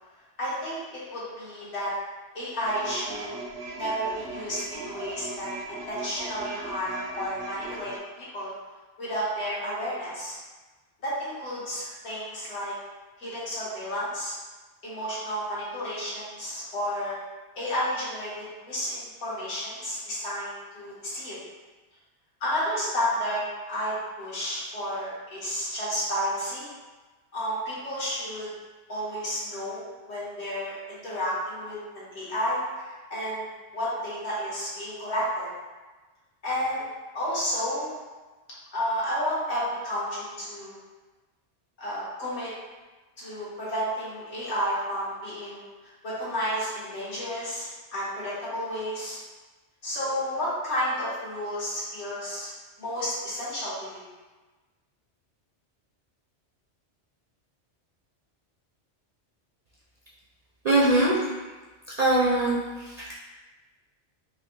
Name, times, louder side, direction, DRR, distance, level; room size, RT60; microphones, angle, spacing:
voice 1, 0.4-1.9 2.3-3.3 3.7-8.5 9.0-10.4 11.0-12.8 13.2-14.4 14.8-17.2 17.5-21.4 22.4-26.7 27.3-28.5 28.9-33.4 33.7-35.5 36.4-36.9 37.1-37.9 38.7-40.7 41.8-42.5 43.2-45.6 46.0-49.2 49.8-52.5 52.8-54.0, equal, 70° left, -9 dB, 1.5 m, -31 dB
sound 1, 2.7-8.0, right 3 dB, 75° right, 0.8 m, -38 dB
voice 2, 60.6-61.3 62.0-62.5 62.8-63.1, right 2 dB, 50° right, -7 dB, 0.5 m, -22 dB
3.9 x 2.6 x 2.9 m, 1.2 s
omnidirectional pair, 1.2 m